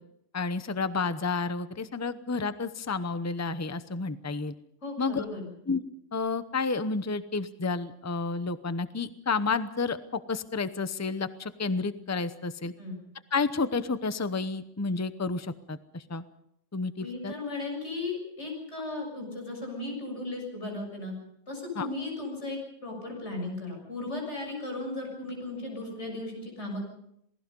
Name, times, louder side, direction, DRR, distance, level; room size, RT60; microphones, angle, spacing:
voice 1, 0.3-4.5 5.0-5.2 5.7-5.8 6.1-12.7 13.3-16.2 16.7-17.3 21.8-21.9, left 4 dB, 15° left, 12 dB, 0.7 m, -30 dB
voice 2, 4.8-5.5 12.8-13.0 17.0-21.1 21.5-26.8, left 2 dB, 65° left, 1 dB, 7.4 m, -36 dB
27.5 x 19.5 x 5.4 m, 0.75 s
omnidirectional pair, 1.3 m